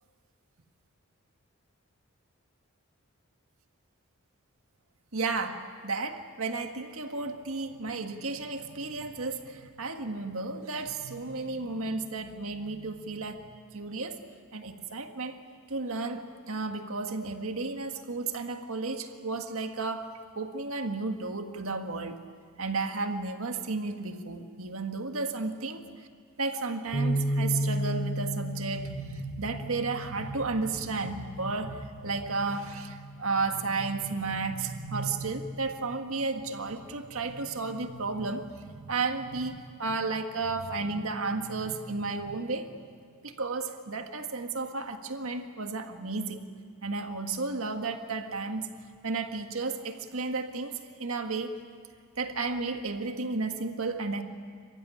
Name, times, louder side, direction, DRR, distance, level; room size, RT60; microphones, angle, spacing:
voice 1, 5.1-13.5 13.7-14.2 14.5-15.4 15.7-20.1 20.3-22.2 22.6-25.8 26.4-42.7 43.2-46.4 46.8-48.7 49.0-51.5 52.2-54.2, right 3 dB, 75° right, 6 dB, 1.7 m, -33 dB
sound 1, 26.9-33.2, right 1 dB, 40° left, 3.2 m, -33 dB
27.5 x 15.5 x 9.9 m, 2.2 s
head